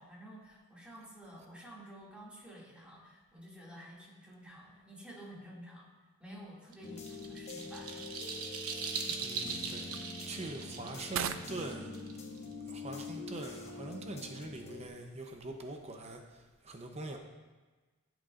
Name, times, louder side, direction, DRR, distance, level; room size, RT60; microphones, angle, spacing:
voice 1, 0.0-5.9 6.2-8.1, equal, 5° right, -6 dB, 2.3 m, -51 dB
sound 1, 6.7-12.5, right 5 dB, 85° right, 1.0 m, -40 dB
sound 2, 6.8-14.9, left 3 dB, 30° left, 1.1 m, -45 dB
sound 3, 6.8-16.0, right 8 dB, 70° right, 0.5 m, -47 dB
voice 2, 9.2-11.9 12.7-16.2 16.6-17.2, right 2 dB, 30° right, 3 dB, 0.7 m, -43 dB
14.0 x 7.9 x 2.5 m, 1.3 s
head